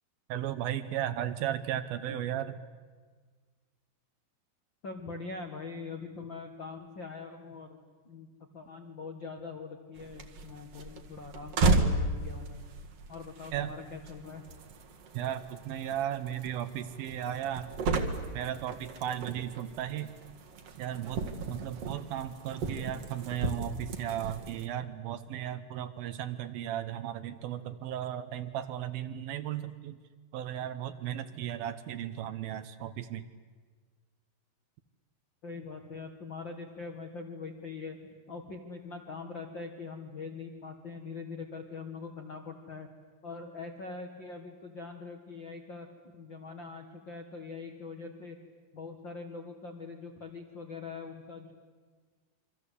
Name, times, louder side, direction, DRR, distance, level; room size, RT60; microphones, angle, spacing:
voice 1, 0.3-2.6 13.5-13.8 15.1-17.8 18.3-20.1 20.8-30.0 30.3-33.3, right 11 dB, 75° right, 11 dB, 2.5 m, -35 dB
voice 2, 4.8-8.3 8.5-12.6 13.1-14.4 35.4-42.9 43.2-45.9 46.1-48.4 48.7-51.5, left 4 dB, 55° left, 3 dB, 1.3 m, -43 dB
sound 1, 9.9-24.7, right 3 dB, 50° right, 2.1 m, -34 dB
28.0 x 24.0 x 8.3 m, 1.5 s
omnidirectional pair, 4.8 m